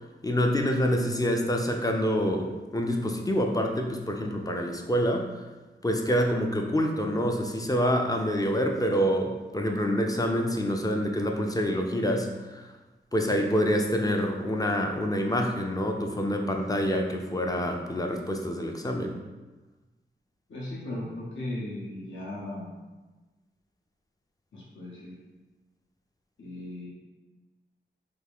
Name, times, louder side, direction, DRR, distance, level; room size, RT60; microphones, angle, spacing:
voice 1, 0.2-5.3 5.8-12.6 13.1-19.2, equal, 20° left, 2 dB, 0.3 m, -27 dB
voice 2, 20.5-22.7 24.5-25.2 26.4-26.9, left 1 dB, 75° left, -5 dB, 0.7 m, -37 dB
3.5 x 2.4 x 3.4 m, 1.2 s
wide cardioid pair, 115°, 20 cm